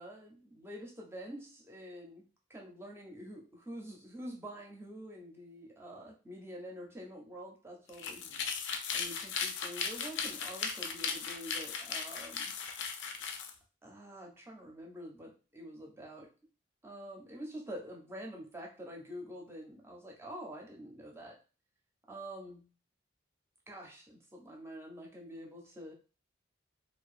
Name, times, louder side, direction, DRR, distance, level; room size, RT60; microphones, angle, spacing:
voice 1, 0.0-8.3 8.9-12.5 13.8-16.3 16.8-21.4 22.1-22.7 23.7-25.9, equal, 15° right, -1 dB, 0.5 m, -47 dB
sound 1, 7.9-13.5, left 6 dB, 65° left, 0.3 m, -37 dB
2.6 x 2.2 x 2.4 m, 0.34 s
head